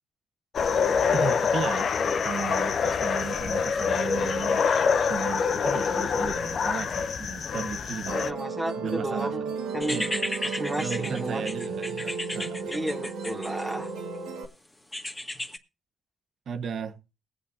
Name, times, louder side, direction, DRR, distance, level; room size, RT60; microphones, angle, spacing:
sound 1, 0.5-8.3, left 6 dB, 50° left, 0.7 m, -26 dB
voice 1, 1.1-1.9 2.2-4.6 5.1-8.3 8.7-9.4 9.9-10.2 10.8-12.9 16.5-17.0, right 6 dB, 60° right, 1.4 m, -35 dB
voice 2, 8.1-10.0 10.4-11.4 12.6-13.9, right 1 dB, 5° right, 1.6 m, -33 dB
Musical instrument, 8.1-14.5, right 4 dB, 90° right, 1.8 m, -34 dB
sound 2, 9.8-14.0 14.9-15.6, left 1 dB, 15° left, 1.9 m, -34 dB
21.0 x 8.2 x 2.8 m
cardioid pair, 90°, 0 cm